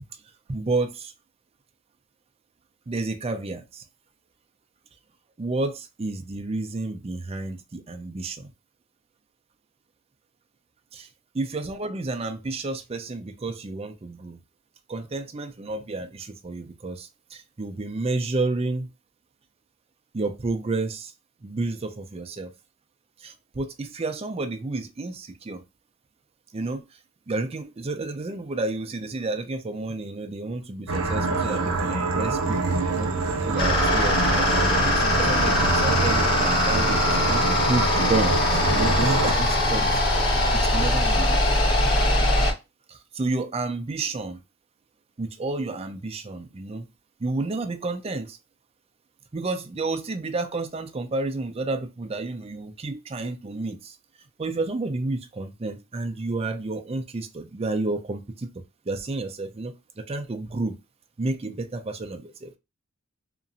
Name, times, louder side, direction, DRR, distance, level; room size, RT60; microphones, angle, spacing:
voice 1, 0.5-1.1 2.9-3.8 5.4-8.5 10.9-11.1 11.3-14.4 14.9-18.9 20.1-21.1 21.4-22.5 23.2-25.6 26.5-26.8 27.3-33.1 33.5-38.3 38.7-40.3 40.5-41.5 42.9-44.4 45.2-46.8 47.2-48.4 49.3-54.0 54.4-58.5 58.9-60.7 61.2-62.6, right 2 dB, 30° right, 0.4 m, -30 dB
sound 1, 30.9-39.3, right 3 dB, 75° right, 0.6 m, -26 dB
sound 2, 33.6-42.5, left 1 dB, 50° left, 1.4 m, -22 dB
2.9 x 2.5 x 2.5 m
head